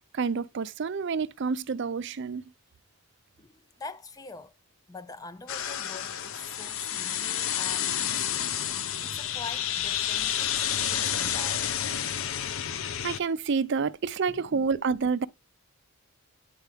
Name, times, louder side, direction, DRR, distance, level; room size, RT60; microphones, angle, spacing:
voice 1, 0.1-2.4 12.8-15.3, right 5 dB, 50° right, 0.4 m, -28 dB
voice 2, 3.4-4.5 4.9-11.8 14.3-14.7, left 4 dB, 15° left, 0.3 m, -45 dB
sound 1, 5.5-13.2, left 10 dB, 65° left, 0.6 m, -30 dB
9.3 x 4.5 x 3.3 m
head